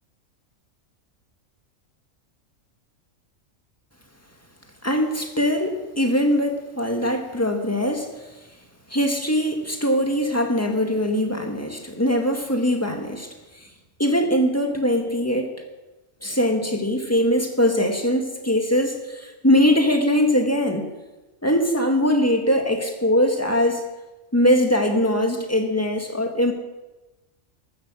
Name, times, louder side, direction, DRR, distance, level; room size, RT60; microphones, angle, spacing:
voice 1, 4.8-8.1 8.9-13.3 14.0-15.6 16.2-20.9 21.4-23.8 24.3-26.5, equal, 10° left, 3 dB, 1.8 m, -21 dB
15.0 x 12.5 x 6.3 m, 1.1 s
omnidirectional pair, 1.3 m